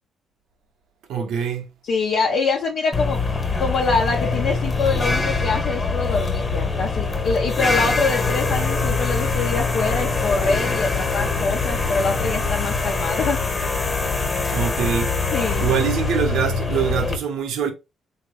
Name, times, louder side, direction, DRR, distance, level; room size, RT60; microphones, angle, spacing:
voice 1, 1.1-1.7 14.5-15.2 15.6-17.7, right 7 dB, 85° right, 1.0 m, -24 dB
voice 2, 1.8-3.2 3.6-13.4 15.3-15.8, left 4 dB, 70° left, 0.9 m, -24 dB
sound 1, 2.9-17.2, left 3 dB, 30° left, 1.4 m, -23 dB
3.9 x 2.9 x 3.2 m
cardioid pair, 90°, 0 cm